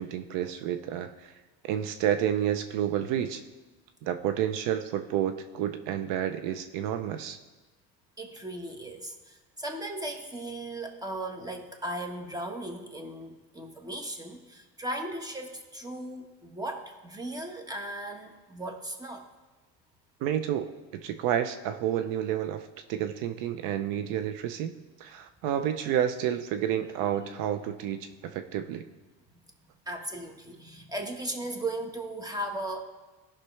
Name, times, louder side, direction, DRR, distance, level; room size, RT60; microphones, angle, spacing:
voice 1, 0.0-1.3 1.6-3.4 4.0-7.4 20.2-20.7 21.0-24.7 25.0-28.8, right 10 dB, 70° right, 9 dB, 0.6 m, -30 dB
voice 2, 8.2-19.3 29.3-29.4 29.9-32.8, right 1 dB, 10° right, 4 dB, 1.3 m, -37 dB
16.0 x 5.8 x 3.3 m, 1.2 s
supercardioid pair, 105°, 33 cm